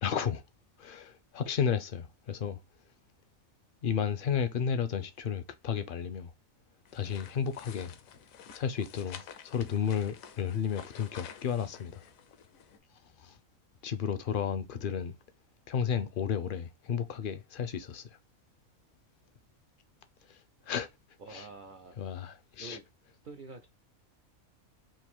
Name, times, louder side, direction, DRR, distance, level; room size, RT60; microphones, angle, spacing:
voice 1, 0.0-0.4 0.8-2.6 3.8-6.3 6.9-8.0 8.5-12.0 13.2-13.4 13.8-15.1 15.7-18.0 20.7-20.9 21.3-21.4 22.0-22.8, left 7 dB, 60° left, 0.6 m, -32 dB
sound 1, 6.8-12.8, left 8 dB, 80° left, 1.1 m, -50 dB
voice 2, 14.7-15.0 21.2-22.0 22.6-22.8 23.2-23.7, right 4 dB, 65° right, 0.5 m, -47 dB
3.8 x 2.5 x 4.3 m
omnidirectional pair, 1.4 m